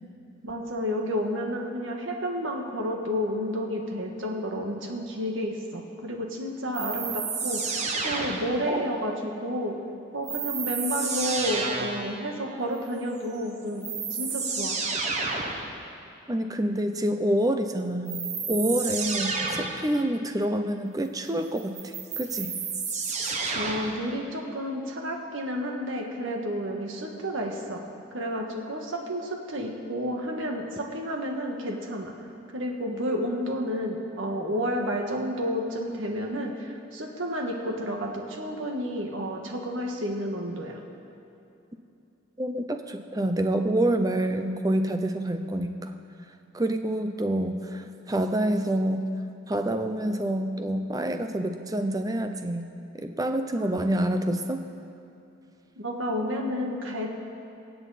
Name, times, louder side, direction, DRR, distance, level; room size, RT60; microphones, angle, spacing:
voice 1, 0.4-7.8 8.0-9.8 10.1-13.8 14.1-14.8 23.5-27.8 28.1-32.1 32.5-40.8 53.5-53.7 55.8-57.2, equal, 75° right, 1 dB, 1.6 m, -31 dB
sound 1, 6.7-8.8 10.3-12.1 13.4-13.5 13.8-15.7 18.1-19.9 21.6-24.0, right 4 dB, 35° right, 1.1 m, -30 dB
voice 2, 16.3-22.5 42.4-45.9 46.5-49.0 49.5-52.7 52.9-54.6, right 1 dB, 20° right, 7 dB, 0.6 m, -27 dB
24.0 x 8.0 x 4.2 m, 2.8 s
head